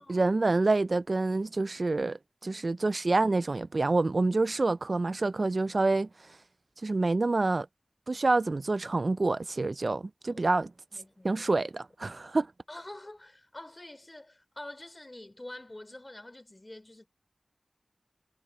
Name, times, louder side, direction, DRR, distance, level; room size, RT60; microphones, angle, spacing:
voice 1, 0.0-6.1 6.8-7.7 8.1-10.7 11.2-12.5, right 3 dB, 55° right, 0.3 m, -27 dB
voice 2, 10.9-11.4 12.1-12.2 12.7-17.1, left 1 dB, 30° left, 3.1 m, -47 dB
cardioid pair, 45°, 0 cm